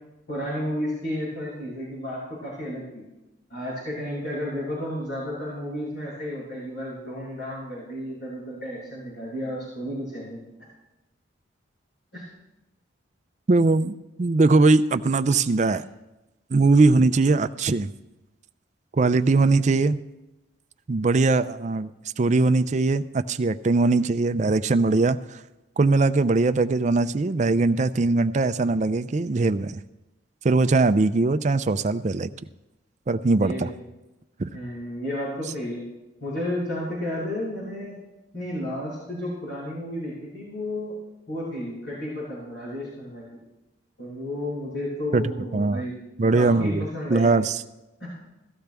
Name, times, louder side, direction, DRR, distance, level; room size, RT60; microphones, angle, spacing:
voice 1, 0.3-3.0 3.5-10.4 12.1-12.2 33.4-33.7 34.5-35.8 36.2-37.9 38.3-40.9 41.3-43.2 44.0-45.9 46.3-47.5 48.0-48.1, left 1 dB, 70° left, -8 dB, 6.3 m, -32 dB
voice 2, 13.5-15.8 16.5-17.9 18.9-20.0 20.9-21.9 22.2-25.4 25.8-29.8 30.4-32.3 33.1-33.7 34.4-34.5 45.1-45.8 46.2-47.6, right 3 dB, 35° right, 11 dB, 0.4 m, -21 dB
17.5 x 13.5 x 3.4 m, 0.98 s
head